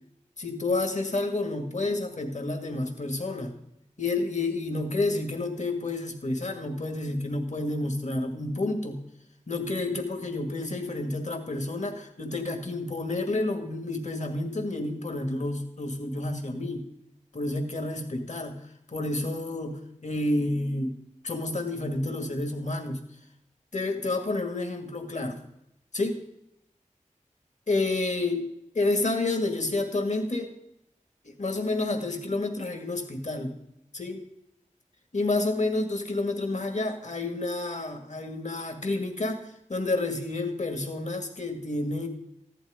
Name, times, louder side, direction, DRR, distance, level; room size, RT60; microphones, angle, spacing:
voice 1, 0.4-3.5 4.0-9.0 9.5-16.9 17.3-18.6 18.9-20.9 21.2-23.0 23.7-25.4 25.9-26.2 27.7-28.4 28.7-30.5 31.2-33.6 33.9-34.2 35.1-42.1, left 2 dB, 60° left, 5 dB, 2.0 m, -29 dB
15.0 x 11.0 x 5.1 m, 0.79 s
wide cardioid pair, 65°, 13 cm